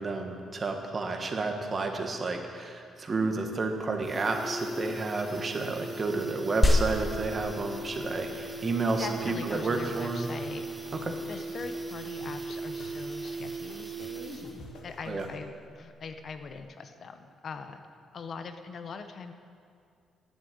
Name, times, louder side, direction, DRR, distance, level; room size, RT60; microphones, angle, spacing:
voice 1, 0.0-10.3 11.1-11.2 15.1-15.3, right 3 dB, 35° right, 4 dB, 1.5 m, -31 dB
sound 1, 3.1-3.2 3.5-3.6 3.9-14.7 15.0-15.1, right 3 dB, 15° right, 1.5 m, -38 dB
sound 2, 5.6-15.5, left 2 dB, 85° left, 1.4 m, -51 dB
sound 3, 6.6-16.6, left 1 dB, 20° left, 1.1 m, -33 dB
voice 2, 9.0-10.7 11.3-14.4 14.8-17.8 18.1-19.3, left 5 dB, 50° left, 8 dB, 0.9 m, -41 dB
10.5 x 7.6 x 8.7 m, 2.3 s
cardioid pair, 90°, 0 cm